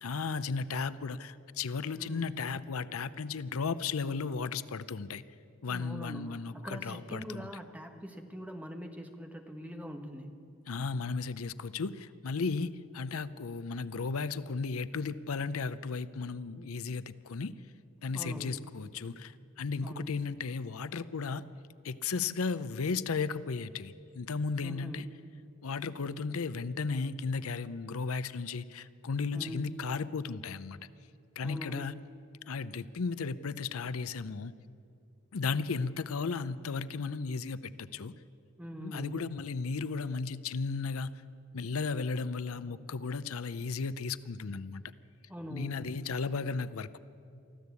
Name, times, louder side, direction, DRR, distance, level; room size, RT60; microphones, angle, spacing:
voice 1, 0.0-5.2 5.6-7.4 10.7-17.5 18.0-21.5 21.8-25.1 25.6-30.8 31.4-31.9 32.5-34.5 35.3-38.1 38.8-41.1 41.5-44.8 45.5-47.0, left 4 dB, 85° left, 15 dB, 0.6 m, -35 dB
voice 2, 2.0-2.3 5.7-10.3 18.1-18.6 19.8-20.1 24.6-25.1 29.3-29.7 31.4-31.9 38.6-39.3 45.3-45.9, equal, 5° right, 4 dB, 1.3 m, -43 dB
24.0 x 14.5 x 8.3 m, 2.5 s
head